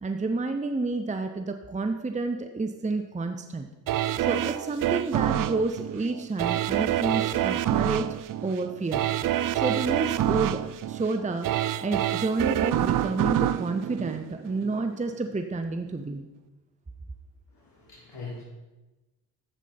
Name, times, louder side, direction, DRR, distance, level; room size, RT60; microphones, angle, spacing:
voice 1, 0.0-3.7 4.2-9.0 9.5-11.5 11.8-16.3, right 3 dB, 15° right, 6 dB, 0.9 m, -30 dB
sound 1, 3.9-14.8 15.3-15.4, right 12 dB, 45° right, 0.5 m, -27 dB
voice 2, 17.5-18.4, left 3 dB, 55° left, -6 dB, 3.4 m, -41 dB
11.5 x 8.2 x 4.3 m, 1.1 s
hypercardioid pair, 45°, 48 cm